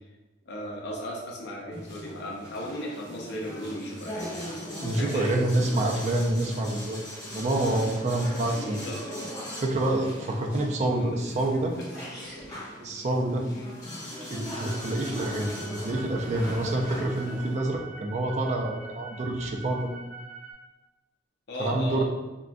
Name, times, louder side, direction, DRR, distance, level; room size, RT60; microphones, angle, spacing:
voice 1, 0.5-4.4 4.9-6.1 8.6-9.3 10.8-11.4 11.7-11.8 13.5-13.7 21.5-22.0, equal, 65° left, -2 dB, 0.5 m, -37 dB
sound 1, 1.7-17.6, equal, 20° left, 1.4 m, -39 dB
voice 2, 4.8-8.8 9.6-11.8 12.8-13.5 14.3-19.9 21.6-22.0, right 1 dB, 40° right, 2 dB, 0.4 m, -27 dB
sound 2, 11.9-12.5, equal, ahead, 0.7 m, -43 dB
sound 3, 14.6-20.5, right 3 dB, 60° right, 1.4 m, -44 dB
3.6 x 2.5 x 2.2 m, 1.1 s
head